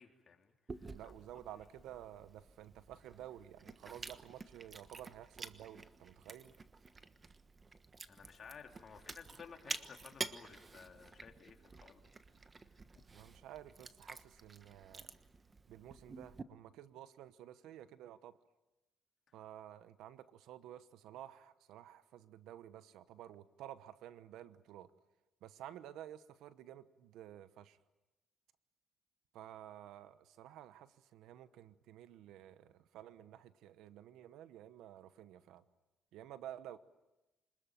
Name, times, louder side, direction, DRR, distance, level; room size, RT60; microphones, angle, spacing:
voice 1, 0.0-1.1 8.1-12.0, left 6 dB, 50° left, 3 dB, 3.4 m, -55 dB
Chewing mastication, 0.7-16.4, right 4 dB, 30° right, 1.3 m, -50 dB
voice 2, 0.9-6.6 13.1-15.1 15.7-18.4 19.3-24.9 25.4-27.8 29.3-35.6 36.1-36.8, right 11 dB, 90° right, 14 dB, 1.0 m, -52 dB
26.5 x 20.5 x 9.1 m, 1.1 s
cardioid pair, 90°, 0 cm